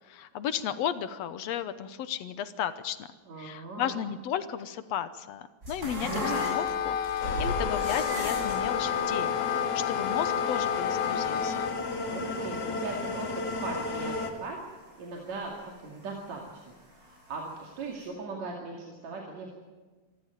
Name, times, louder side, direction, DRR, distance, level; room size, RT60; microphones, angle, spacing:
voice 1, 0.1-3.1 3.4-11.7, left 9 dB, 70° left, 13 dB, 1.9 m, -34 dB
voice 2, 3.3-3.9 12.0-14.6 15.0-16.6 16.9-19.5, right 3 dB, 70° right, -1 dB, 3.6 m, -39 dB
sound 1, 5.6-14.1 14.3-16.0 16.4-17.6 17.9-18.0, equal, 30° right, 8.4 m, -38 dB
Wind instrument woodwind instrument, 6.1-11.8, left 9 dB, 85° left, 2.4 m, -30 dB
sound 2, 7.2-14.3, left 3 dB, 40° left, 2.3 m, -34 dB
25.5 x 14.0 x 9.1 m, 1.3 s
omnidirectional pair, 3.3 m